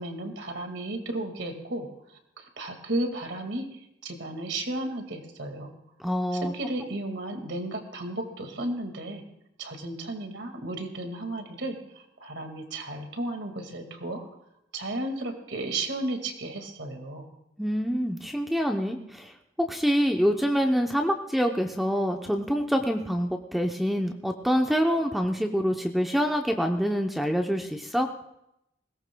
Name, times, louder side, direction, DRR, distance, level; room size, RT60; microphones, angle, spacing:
voice 1, 0.0-5.7 6.5-9.2 9.6-14.3 14.7-17.3, right 2 dB, 75° right, 5 dB, 2.0 m, -34 dB
voice 2, 6.0-6.5 17.6-19.3 19.7-28.1, equal, ahead, 3 dB, 0.7 m, -26 dB
20.5 x 17.5 x 2.3 m, 0.81 s
head